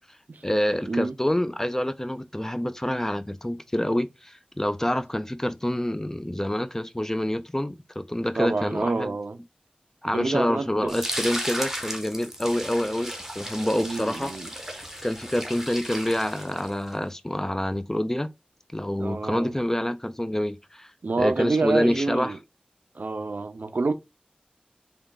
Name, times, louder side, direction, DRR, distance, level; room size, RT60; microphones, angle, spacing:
voice 1, 0.4-9.1 10.0-14.7 15.0-18.3 18.7-20.9 21.2-22.3, left 1 dB, 15° left, 0.4 m, -27 dB
voice 2, 8.4-9.4 10.1-11.0 13.8-14.5 19.0-19.5 21.0-22.4 22.9-23.9, right 3 dB, 85° right, 0.4 m, -27 dB
sound 1, 10.9-16.9, equal, 10° right, 0.8 m, -35 dB
3.4 x 2.3 x 3.8 m
wide cardioid pair, 60°, 3 cm